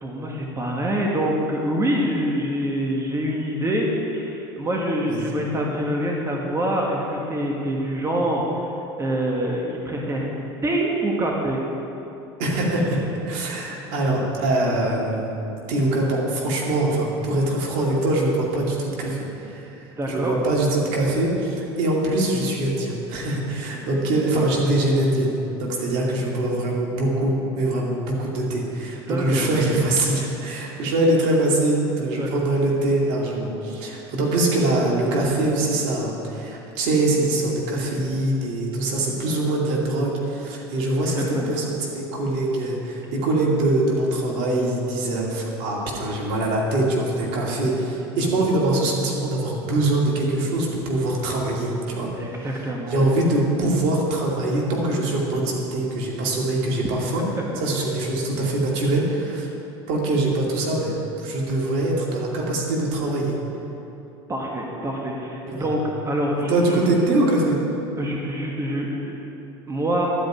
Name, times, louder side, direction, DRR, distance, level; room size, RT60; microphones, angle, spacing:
voice 1, 0.0-3.9 4.1-8.4 9.0-10.3 10.6-11.6 20.0-20.3 29.1-29.5 32.1-32.3 41.0-41.5 52.2-53.1 64.3-66.8 68.0-69.2 69.7-70.1, right 1 dB, 20° right, -1 dB, 1.7 m, -25 dB
voice 2, 12.4-25.3 25.6-52.6 52.9-57.2 57.6-59.5 59.9-63.4 65.5-65.7 66.5-67.6, right 2 dB, 65° right, -3 dB, 2.6 m, -23 dB
12.0 x 5.2 x 8.8 m, 2.9 s
hypercardioid pair, 85°, 13 cm